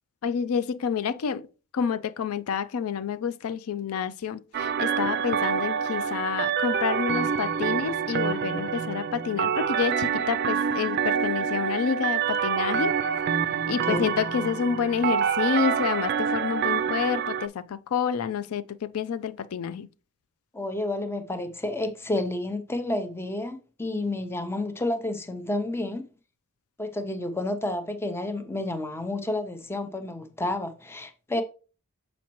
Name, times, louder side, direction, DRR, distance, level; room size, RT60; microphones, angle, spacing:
voice 1, 0.2-1.5 1.7-13.0 13.7-19.9, left 7 dB, 85° left, 0.4 m, -28 dB
sound 1, 4.5-17.5, right 7 dB, 50° right, 0.4 m, -27 dB
voice 2, 20.5-26.0 26.8-31.4, left 1 dB, 10° left, 0.6 m, -30 dB
7.1 x 5.1 x 3.0 m
head